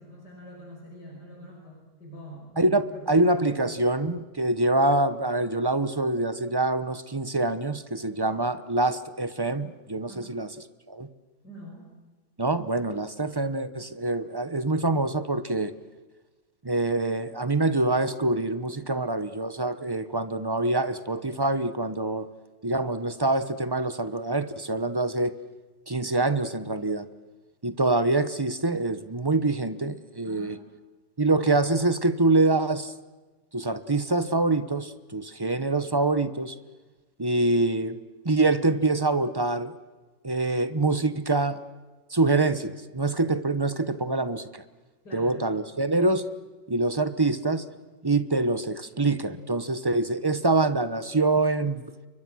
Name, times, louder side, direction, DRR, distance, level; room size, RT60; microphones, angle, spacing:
voice 1, 0.0-3.8 8.3-8.4 10.1-10.4 11.4-11.9 30.2-30.6 45.0-45.4, equal, 65° left, -1 dB, 6.0 m, -44 dB
voice 2, 2.6-10.5 10.9-11.1 12.4-15.7 16.6-22.3 22.6-25.4 25.9-27.1 27.6-30.6 31.2-32.9 33.5-36.5 37.2-38.0 38.2-39.7 40.2-41.6 42.1-44.6 45.1-46.3 46.7-47.6 48.0-51.9, right 2 dB, 20° right, 12 dB, 0.7 m, -25 dB
30.0 x 23.5 x 6.3 m, 1.3 s
omnidirectional pair, 1.9 m